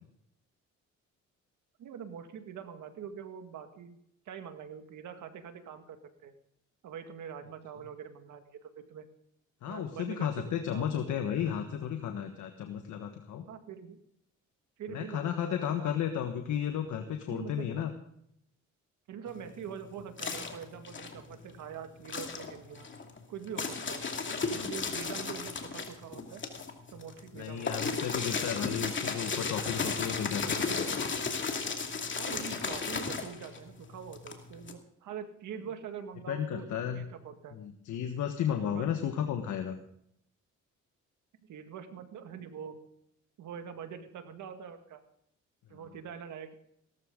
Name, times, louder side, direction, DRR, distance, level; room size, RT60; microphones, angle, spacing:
voice 1, 1.8-4.0 4.3-6.0 6.2-6.3 6.8-9.0 9.7-10.9 13.5-14.0 14.8-15.9 17.3-17.7 19.1-22.9 23.3-24.0 24.5-26.5 26.9-28.0 32.2-37.6 38.7-38.9 41.4-42.8 43.4-45.0 45.7-46.5, right 7 dB, 75° right, 7 dB, 2.0 m, -44 dB
voice 2, 9.6-13.4 14.9-17.9 24.3-24.7 27.4-31.0 36.3-37.1 37.5-39.8, left 9 dB, 75° left, 6 dB, 1.5 m, -33 dB
sound 1, 19.3-21.6 22.0-34.7, left 4 dB, 40° left, 2.5 m, -35 dB
17.5 x 14.0 x 3.8 m, 0.72 s
cardioid pair, 90°, 30 cm